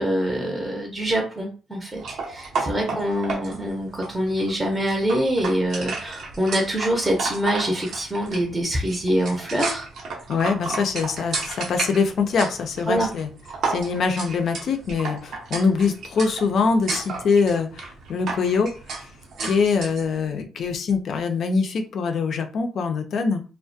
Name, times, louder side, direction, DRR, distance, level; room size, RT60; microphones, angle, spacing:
voice 1, 0.0-9.9 12.9-13.1, equal, 15° right, 0 dB, 0.6 m, -25 dB
sound 1, 2.0-20.1, right 4 dB, 70° right, 0.6 m, -33 dB
voice 2, 10.3-13.3 13.6-18.7 19.0-19.1 19.4-23.4, left 5 dB, 60° left, 6 dB, 0.4 m, -23 dB
2.3 x 2.1 x 2.6 m, 0.35 s
cardioid pair, 90°, 0 cm